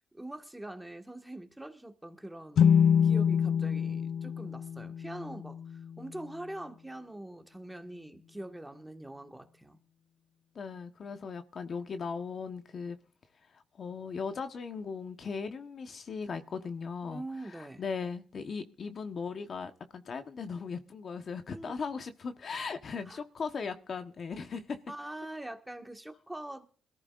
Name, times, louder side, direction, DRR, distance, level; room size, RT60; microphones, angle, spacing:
voice 1, 0.1-9.8 17.0-17.8 21.5-21.7 23.1-23.2 24.9-26.7, right 1 dB, 5° right, 1.8 m, -44 dB
sound 1, 2.6-6.1, left 7 dB, 65° left, 0.6 m, -26 dB
voice 2, 10.5-13.0 13.5-24.8, left 5 dB, 50° left, 1.2 m, -38 dB
21.5 x 14.0 x 2.5 m
cardioid pair, 90°, 0 cm